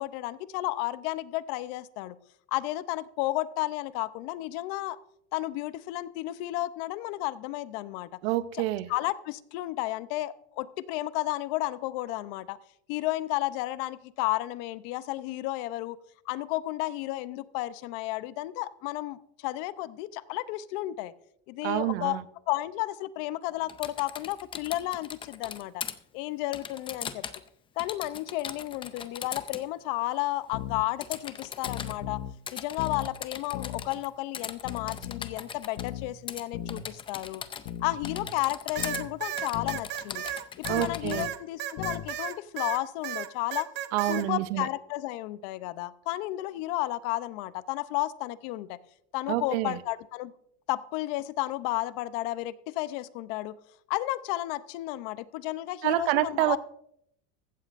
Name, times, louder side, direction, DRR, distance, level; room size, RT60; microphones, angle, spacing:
voice 1, 0.0-2.2 2.5-5.0 5.3-8.1 8.9-12.6 12.9-16.0 16.3-21.1 21.5-22.2 22.5-25.8 26.1-27.2 27.8-32.2 32.5-37.4 37.8-40.2 40.6-43.7 44.1-48.8 49.1-50.3 50.7-53.6 53.9-56.6, left 17 dB, 55° left, 16 dB, 0.6 m, -32 dB
voice 2, 8.2-8.9 21.6-22.2 40.7-41.3 43.9-44.7 49.3-49.8 55.8-56.6, right 15 dB, 70° right, 14 dB, 0.8 m, -27 dB
Typing, 23.7-25.9 26.5-27.5 27.8-29.6 31.0-32.0 32.5-34.1 34.3-35.9 36.3-36.4 36.7-37.8 38.0-39.0 39.4-41.3, left 7 dB, 15° left, 0.5 m, -39 dB
sound 1, 30.5-30.9 31.6-32.4 32.8-33.1 33.5-33.9 34.6-35.4 35.8-36.1 36.5-36.9 37.7-38.3 38.8-39.1 39.5-39.8 40.6-41.3 41.8-42.1, left 10 dB, 75° left, 1.0 m, -37 dB
sound 2, 38.7-42.8 43.0-44.2, right 11 dB, 35° right, 0.8 m, -34 dB
15.5 x 13.5 x 2.5 m, 0.73 s
supercardioid pair, 155°, 32 cm